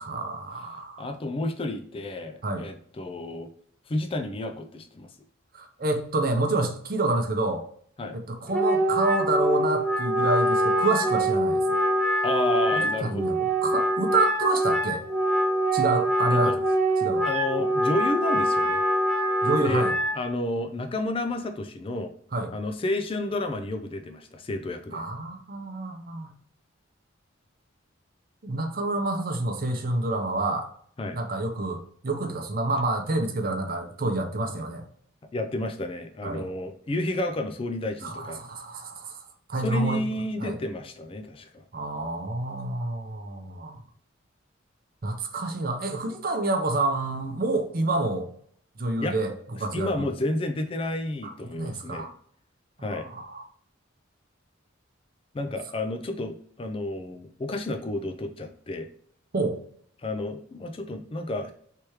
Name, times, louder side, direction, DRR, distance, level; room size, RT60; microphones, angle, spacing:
voice 1, 0.0-1.1 2.4-2.7 5.5-7.6 8.1-11.8 12.7-13.3 13.6-15.0 15.7-16.6 17.0-17.3 19.4-19.9 22.3-22.5 24.9-26.3 28.4-30.7 31.1-34.8 36.2-36.5 38.0-39.2 39.5-40.0 40.4-40.6 41.7-43.8 45.0-48.3 48.8-49.3 49.6-50.1 51.2-52.1 52.8-53.5 59.3-59.6, right 2 dB, 45° right, 5 dB, 0.6 m, -28 dB
voice 2, 1.0-3.5 3.9-5.1 8.0-8.2 12.2-13.4 16.3-16.6 17.3-18.8 19.6-19.9 20.1-22.1 22.5-25.0 31.0-31.2 35.3-38.4 39.6-41.6 49.0-49.2 49.6-52.1 52.8-53.1 55.3-58.9 60.0-61.5, left 2 dB, 25° left, 6 dB, 0.3 m, -31 dB
Wind instrument woodwind instrument, 8.5-20.2, right 1 dB, 5° left, 0.8 m, -24 dB
3.3 x 3.1 x 4.6 m, 0.62 s
head